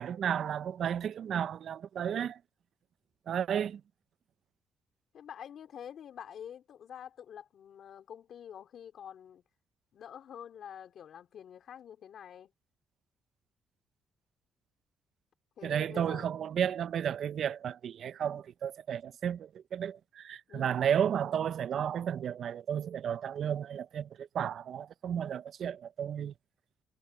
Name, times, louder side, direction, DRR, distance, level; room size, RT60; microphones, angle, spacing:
voice 1, 0.0-2.4 3.3-3.8 15.6-26.3, right 9 dB, 65° right, 0.6 m, -33 dB
voice 2, 5.1-9.4 9.9-12.5 15.6-16.3 20.5-20.8, left 9 dB, 65° left, 3.2 m, -47 dB
cardioid pair, 90°, 0 cm